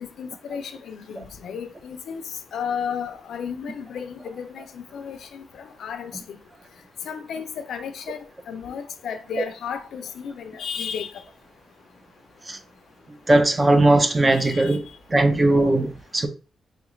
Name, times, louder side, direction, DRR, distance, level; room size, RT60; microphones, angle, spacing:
voice 1, 0.0-2.2 2.5-6.4 7.0-11.2 14.4-14.8, left 7 dB, 70° left, 0.5 m, -33 dB
voice 2, 13.3-14.8 15.1-16.3, right 2 dB, 20° right, 0.4 m, -18 dB
3.6 x 2.4 x 3.1 m
cardioid pair, 135°, 0 cm